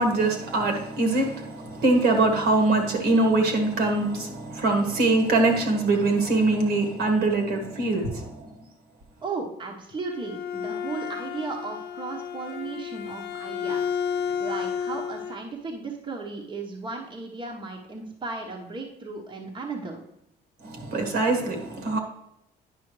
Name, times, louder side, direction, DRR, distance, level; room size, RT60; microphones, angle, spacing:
voice 1, 0.0-8.5 20.6-22.0, right 2 dB, 70° right, 1.7 m, -23 dB
voice 2, 9.2-13.8 14.4-20.0, right 4 dB, 30° right, 1.1 m, -35 dB
Bowed string instrument, 9.9-15.4, left 7 dB, 70° left, 0.6 m, -32 dB
9.7 x 5.5 x 3.2 m
cardioid pair, 110°, 17 cm